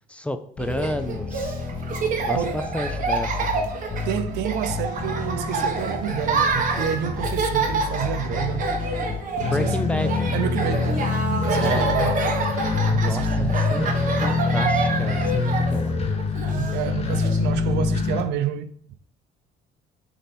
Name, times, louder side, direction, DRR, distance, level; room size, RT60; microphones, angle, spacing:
voice 1, 0.1-1.6 2.3-3.7 9.4-10.3 11.6-11.9 13.0-13.9 14.2-15.9, left 1 dB, 5° left, 0.5 m, -31 dB
sound 1, 0.6-18.2, left 4 dB, 40° left, 1.0 m, -26 dB
Laughter, 0.6-17.4, right 4 dB, 50° right, 1.3 m, -27 dB
voice 2, 4.0-8.7 9.6-9.9 10.3-12.2 12.9-13.5 16.5-19.0, right 10 dB, 80° right, 0.6 m, -29 dB
7.3 x 2.9 x 5.3 m
cardioid pair, 110°, 17 cm